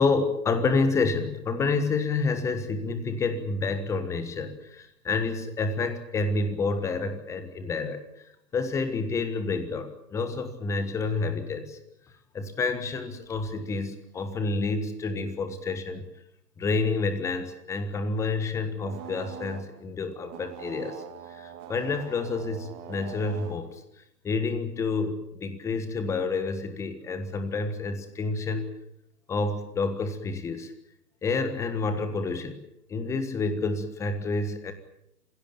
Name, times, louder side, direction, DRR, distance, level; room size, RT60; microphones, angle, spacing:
voice 1, 0.0-8.0 8.5-11.8 12.3-16.0 16.6-21.0 21.3-21.4 21.7-23.8 24.2-28.8 29.3-30.7 31.2-32.6 32.9-34.7, left 3 dB, 5° left, 10 dB, 1.3 m, -29 dB
sound 1, 18.8-19.9 20.2-23.8, right 9 dB, 20° right, 2.1 m, -43 dB
27.5 x 16.5 x 9.1 m, 0.80 s
figure-of-eight pair, 140°, 49 cm